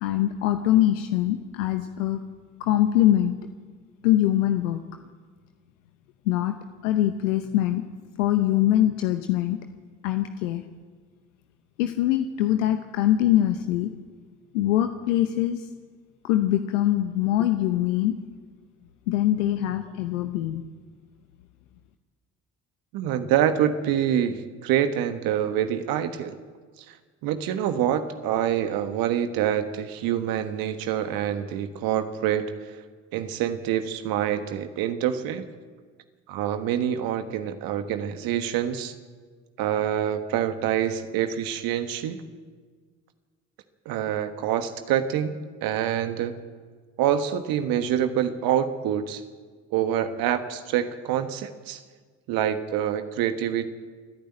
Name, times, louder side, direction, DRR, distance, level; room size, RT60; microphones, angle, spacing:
voice 1, 0.0-2.2 2.6-3.3 4.0-4.8 6.3-6.5 6.8-7.8 8.2-9.6 10.0-10.6 11.8-13.9 14.5-15.7 16.2-18.2 19.1-20.6, left 13 dB, 80° left, 7 dB, 1.0 m, -23 dB
voice 2, 22.9-26.3 26.8-27.0 27.2-32.5 33.1-35.4 36.3-38.9 39.6-42.2 43.8-45.4 45.6-46.4 47.0-49.2 49.7-51.8 52.3-53.7, right 10 dB, 65° right, 8 dB, 1.4 m, -26 dB
29.0 x 10.5 x 9.0 m, 1.5 s
hypercardioid pair, 55°, 37 cm